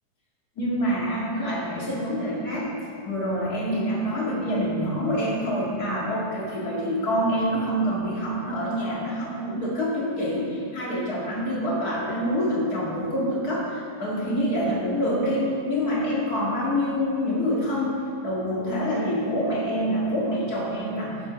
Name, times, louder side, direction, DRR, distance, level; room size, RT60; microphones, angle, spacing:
voice 1, 0.6-2.7 3.0-21.2, equal, 60° left, -5 dB, 2.5 m, -26 dB
8.5 x 8.2 x 6.2 m, 2.6 s
omnidirectional pair, 1.9 m